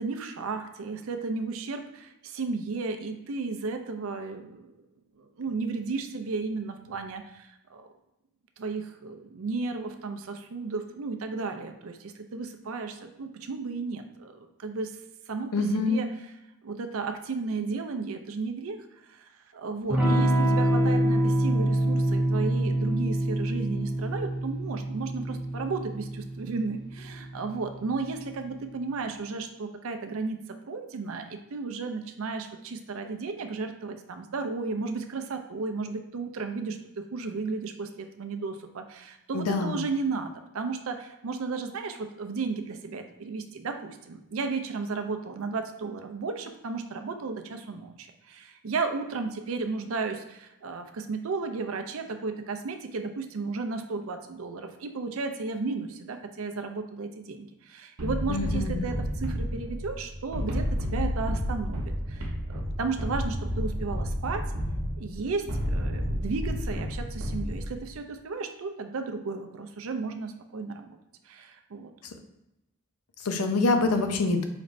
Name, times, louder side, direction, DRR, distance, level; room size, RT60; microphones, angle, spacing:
voice 1, 0.0-4.7 5.2-7.9 8.6-15.0 15.3-16.1 16.6-18.8 19.1-64.4 65.0-71.0 71.3-71.9, right 4 dB, 65° right, 6 dB, 0.5 m, -34 dB
voice 2, 15.5-16.0 39.3-39.9 58.3-58.9 73.2-74.4, left 3 dB, 85° left, 6 dB, 0.6 m, -26 dB
Electric guitar / Strum, 19.9-28.2, right 1 dB, 5° right, 0.8 m, -26 dB
sound 1, 58.0-67.9, equal, 90° right, 0.9 m, -31 dB
5.0 x 3.1 x 2.5 m, 0.90 s
head